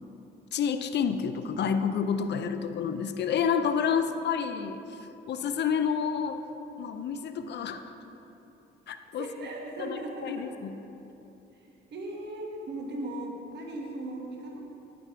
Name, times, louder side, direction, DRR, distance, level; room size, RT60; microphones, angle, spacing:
voice 1, 0.5-6.4 6.8-7.9 8.9-9.5 9.8-10.7, left 7 dB, 60° left, 9 dB, 0.6 m, -29 dB
voice 2, 9.2-10.7 11.5-14.6, right 1 dB, 60° right, -1 dB, 1.6 m, -38 dB
10.0 x 9.2 x 3.7 m, 3.0 s
cardioid pair, 90°, 20 cm